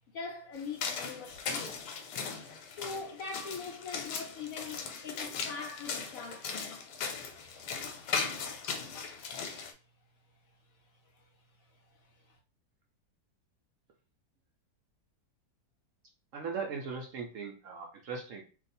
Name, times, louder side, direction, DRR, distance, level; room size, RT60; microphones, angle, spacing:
voice 1, 0.1-1.8 2.8-6.8 11.1-11.2 11.7-12.4, left 5 dB, 70° left, 0.9 m, -42 dB
sound 1, 0.6-9.7, left 5 dB, 85° left, 1.2 m, -38 dB
voice 2, 16.3-18.4, right 5 dB, 70° right, 0.8 m, -38 dB
2.6 x 2.4 x 4.1 m
omnidirectional pair, 1.8 m